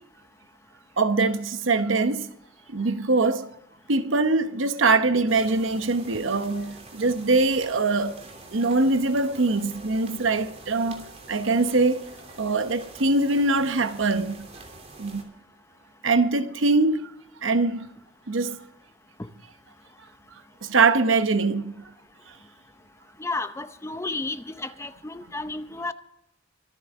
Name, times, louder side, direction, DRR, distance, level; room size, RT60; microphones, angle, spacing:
voice 1, 1.0-2.3 2.7-3.5 3.9-8.2 8.5-12.1 12.4-14.4 15.0-15.2 16.0-17.1 17.4-17.9 18.3-18.6 20.6-21.8, right 3 dB, 75° right, 1.0 m, -23 dB
sound 1, 5.3-15.2, right 2 dB, 35° right, 3.0 m, -46 dB
voice 2, 23.2-25.9, left 3 dB, 15° left, 0.7 m, -32 dB
24.5 x 10.0 x 3.6 m
head